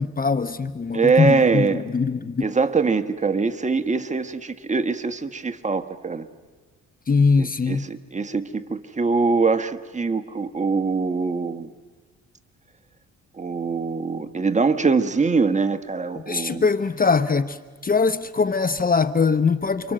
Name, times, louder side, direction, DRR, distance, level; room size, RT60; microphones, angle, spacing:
voice 1, 0.0-2.4 7.1-7.9 16.3-17.6 17.8-19.9, left 4 dB, 30° left, 0.9 m, -21 dB
voice 2, 0.9-1.8 2.4-6.3 7.4-11.7 13.4-16.6, right 4 dB, 25° right, 1.4 m, -23 dB
29.5 x 25.0 x 7.7 m
cardioid pair, 90°, 30 cm